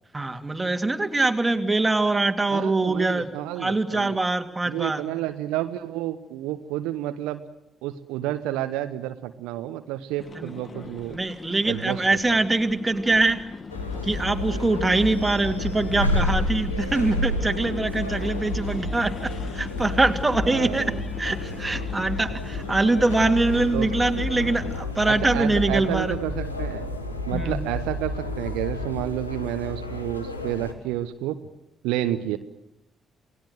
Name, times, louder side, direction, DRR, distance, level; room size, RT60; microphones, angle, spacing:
voice 1, 0.1-3.3 3.6-5.1 10.4-10.5 11.1-13.4 14.0-20.9 21.2-26.1 27.3-27.6, right 2 dB, 20° right, 5 dB, 2.6 m, -23 dB
voice 2, 2.5-4.2 4.6-7.4 7.8-11.2 11.6-12.4 20.4-21.0 23.7-23.9 25.1-26.9 27.3-31.4 31.8-32.4, right 13 dB, 70° right, 9 dB, 1.0 m, -30 dB
sound 1, 10.2-24.8, left 4 dB, 40° left, 2.2 m, -39 dB
sound 2, 13.7-30.7, left 1 dB, 90° left, 1.7 m, -33 dB
sound 3, 13.7-29.0, left 3 dB, 60° left, 1.9 m, -33 dB
28.5 x 18.5 x 7.9 m, 0.82 s
figure-of-eight pair, 40°, 0 cm